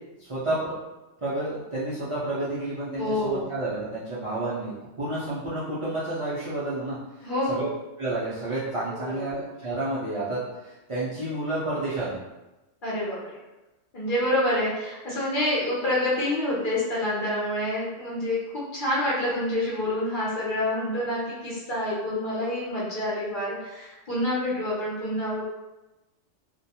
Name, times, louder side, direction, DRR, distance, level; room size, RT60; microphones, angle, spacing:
voice 1, 0.2-0.8 1.2-7.7 8.0-12.2, right 2 dB, 45° right, -10 dB, 0.4 m, -30 dB
voice 2, 3.0-3.4 7.2-7.7 9.0-9.3 12.8-13.4 13.9-25.4, left 1 dB, 50° left, -7 dB, 0.8 m, -27 dB
2.4 x 2.2 x 2.7 m, 1.0 s
omnidirectional pair, 1.3 m